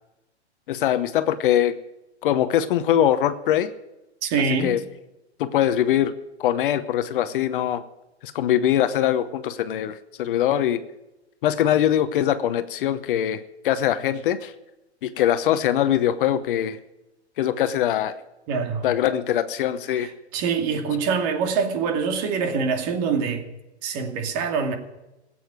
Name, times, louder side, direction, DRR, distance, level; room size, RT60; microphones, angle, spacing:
voice 1, 0.7-1.7 2.2-3.7 4.6-4.8 5.4-6.1 6.4-7.8 8.2-10.8 11.4-14.5 15.0-16.8 17.4-18.2 18.8-20.1, left 11 dB, 50° left, 1.0 m, -22 dB
voice 2, 4.2-4.8 18.5-18.9 20.0-23.5 23.8-24.8, right 5 dB, 35° right, 2.5 m, -25 dB
16.0 x 8.8 x 9.4 m
hypercardioid pair, 135°, 34 cm